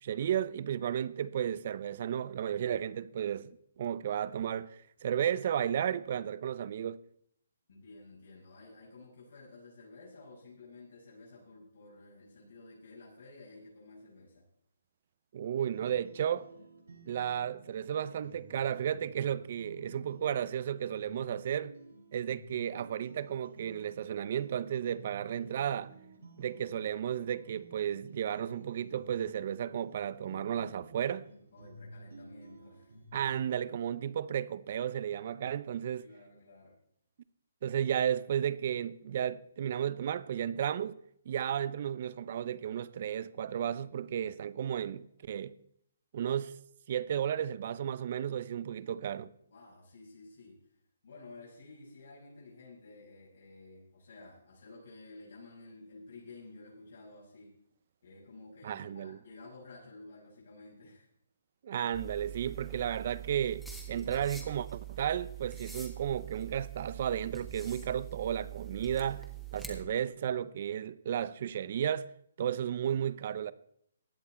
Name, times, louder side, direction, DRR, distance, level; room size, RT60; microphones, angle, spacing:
voice 1, 0.0-7.0 15.3-16.5 17.1-21.7 22.1-25.9 26.4-31.3 33.1-36.1 37.6-41.0 41.3-45.5 46.1-46.5 46.9-49.3 58.6-59.2 61.6-72.1 72.4-73.5, right 9 dB, 45° right, 0.6 m, -33 dB
voice 2, 7.7-14.4 31.5-33.0 36.0-36.8 49.5-50.6 51.0-57.5 58.0-61.1, left 3 dB, 75° left, 6.1 m, -52 dB
sound 1, 15.7-33.3, right 2 dB, 80° right, 5.9 m, -54 dB
sound 2, 61.9-69.8, right 10 dB, ahead, 1.6 m, -44 dB
16.5 x 10.5 x 4.4 m
hypercardioid pair, 160°, 0 cm